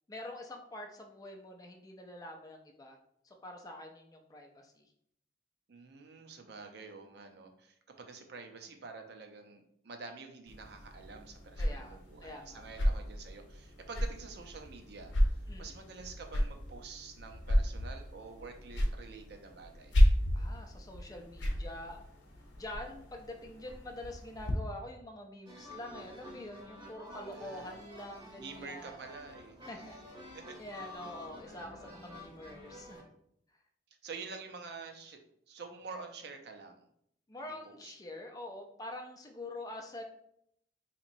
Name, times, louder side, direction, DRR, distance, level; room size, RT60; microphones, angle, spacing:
voice 1, 0.1-3.0 3.2-4.8 11.6-13.1 15.5-15.7 20.3-22.0 22.6-29.0 29.7-33.1 37.3-40.0, left 1 dB, 20° left, 3 dB, 0.4 m, -46 dB
voice 2, 5.7-20.0 27.3-27.8 28.4-29.8 30.3-30.9 31.5-31.9 34.0-35.2 35.5-36.8 37.4-37.9, right 4 dB, 60° right, 5 dB, 0.5 m, -48 dB
sound 1, 10.5-24.5, equal, 80° left, 0.7 m, -33 dB
sound 2, 25.5-33.0, left 1 dB, 25° right, 0.8 m, -50 dB
3.9 x 2.9 x 2.6 m, 0.72 s
head